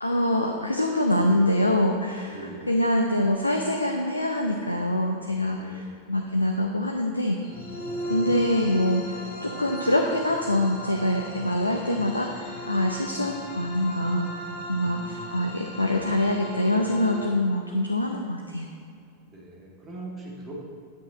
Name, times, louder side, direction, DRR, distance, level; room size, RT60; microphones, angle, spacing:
voice 1, 0.0-7.4 8.1-14.3 14.7-18.7, left 1 dB, 85° left, 2 dB, 0.6 m, -25 dB
voice 2, 2.3-2.7 5.6-5.9 14.7-15.2 19.3-20.5, right 2 dB, 25° right, -3 dB, 2.1 m, -41 dB
sound 1, 7.4-17.3, equal, 40° left, 1.6 m, -37 dB
8.6 x 7.4 x 4.3 m, 2.4 s
figure-of-eight pair, 90°, 0 cm